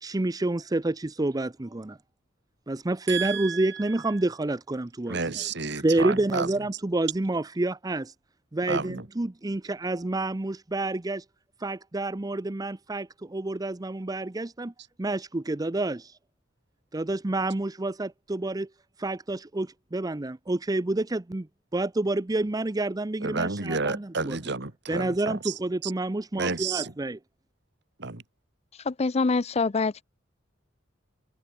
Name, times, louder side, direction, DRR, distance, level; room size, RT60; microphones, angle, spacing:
voice 1, 0.0-2.0 2.7-5.2 5.8-8.1 8.5-11.2 11.6-14.7 15.0-16.1 16.9-18.7 19.0-21.5 21.7-24.4 24.9-27.2, right 2 dB, 20° right, 0.6 m, -28 dB
voice 2, 3.1-4.0 5.1-6.5 8.7-9.1 23.2-25.9 26.3-26.9 28.0-28.2, right 4 dB, 65° right, 2.4 m, -31 dB
voice 3, 28.9-30.0, left 4 dB, 35° left, 0.5 m, -25 dB
head